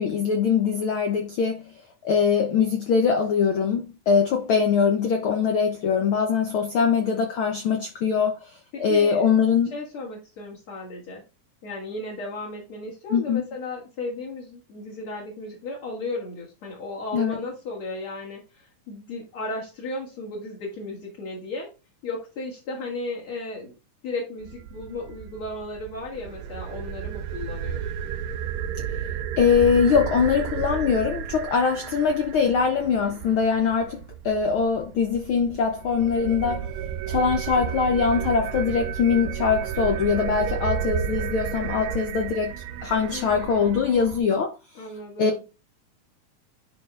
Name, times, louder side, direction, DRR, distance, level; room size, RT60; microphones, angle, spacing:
voice 1, 0.0-1.6 2.0-9.7 13.1-13.4 17.1-17.4 29.4-36.7 37.1-42.6 42.8-44.5 45.2-45.3, left 6 dB, 80° left, 1.1 m, -22 dB
voice 2, 8.7-9.4 9.7-11.2 11.6-21.7 22.0-23.7 24.0-28.1 43.1-43.6 44.7-45.4, left 2 dB, 50° left, 2.6 m, -35 dB
sound 1, 24.4-44.2, right 9 dB, 80° right, 1.6 m, -33 dB
11.0 x 4.2 x 2.4 m
omnidirectional pair, 3.5 m